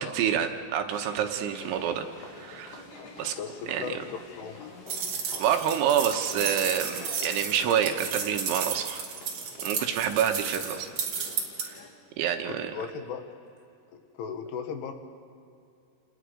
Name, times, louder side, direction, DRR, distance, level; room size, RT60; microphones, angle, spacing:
voice 1, 0.0-2.1 2.4-2.8 3.2-3.3 3.7-4.0 5.4-9.0 9.6-10.9 11.6-11.8 12.2-12.7, right 9 dB, 75° right, 5 dB, 3.3 m, -27 dB
sound 1, 0.9-11.9, left 3 dB, 50° left, 3.3 m, -47 dB
voice 2, 3.4-4.0 4.3-4.8 12.5-13.2 13.9-14.9, left 7 dB, 75° left, 6 dB, 3.6 m, -37 dB
sound 2, 4.9-11.6, right 6 dB, 50° right, 2.4 m, -33 dB
29.5 x 19.5 x 5.0 m, 2.5 s
omnidirectional pair, 5.8 m